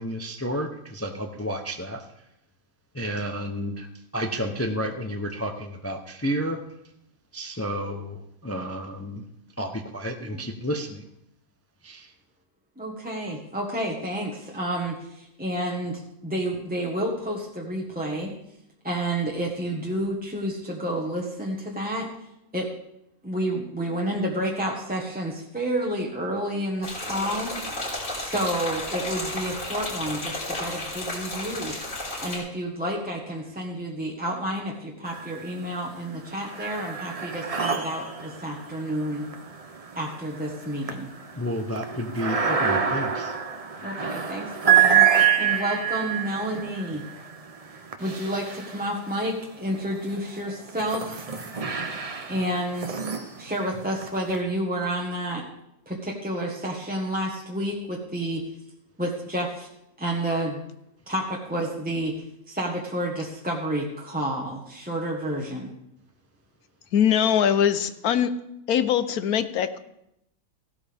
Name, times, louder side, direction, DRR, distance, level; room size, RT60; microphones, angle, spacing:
voice 1, 0.0-2.0 2.9-3.9 4.1-6.6 7.3-9.2 9.6-11.0 11.8-12.1 41.3-43.3, equal, 15° left, 4 dB, 0.5 m, -31 dB
voice 2, 12.8-18.4 18.8-22.1 22.5-22.7 23.2-27.6 28.2-31.8 32.2-39.3 39.9-41.1 43.8-45.1 45.4-47.0 48.0-51.2 52.3-53.0 53.4-55.4 55.9-58.5 59.0-59.7 60.0-60.6 61.1-65.7, right 1 dB, 5° right, -3 dB, 1.3 m, -30 dB
sound 1, 26.8-32.4, left 1 dB, 65° left, 7.0 m, -33 dB
sound 2, 35.1-35.7 36.1-49.3 49.9-54.4, right 8 dB, 35° right, 0.7 m, -27 dB
voice 3, 66.9-68.3 68.7-69.8, left 9 dB, 85° left, 11 dB, 1.3 m, -22 dB
16.0 x 12.0 x 3.5 m, 0.81 s
omnidirectional pair, 1.5 m